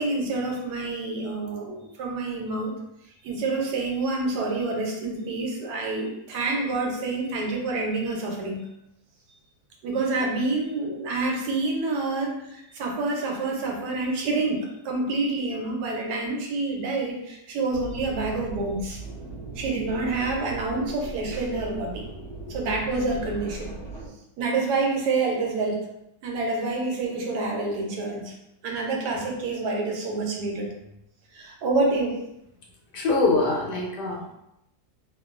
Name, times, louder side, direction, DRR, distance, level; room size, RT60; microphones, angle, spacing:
voice 1, 0.0-2.8 3.2-8.7 9.8-22.0 22.5-23.7 24.4-25.9 26.2-28.3 28.6-30.7 31.3-32.2, right 3 dB, 80° right, 0 dB, 1.2 m, -28 dB
sound 1, 17.7-24.1, right 3 dB, 45° left, 1.0 m, -38 dB
voice 2, 32.9-34.3, left 3 dB, 80° left, -2 dB, 1.3 m, -24 dB
2.9 x 2.2 x 2.4 m, 0.82 s
omnidirectional pair, 1.8 m